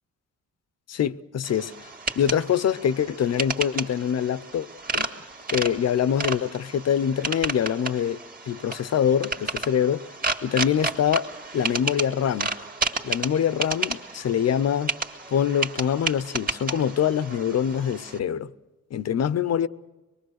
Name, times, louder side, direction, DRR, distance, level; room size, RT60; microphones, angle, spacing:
voice 1, 0.9-1.9 2.2-4.7 4.9-5.1 5.5-8.2 8.5-10.0 10.4-11.3 11.5-12.5 13.0-14.9 15.3-18.5 18.9-19.7, left 8 dB, 55° left, 0.7 m, -24 dB
sound 1, 1.4-18.2, right 3 dB, 25° right, 2.0 m, -32 dB
25.0 x 22.0 x 6.5 m
cardioid pair, 130°, 32 cm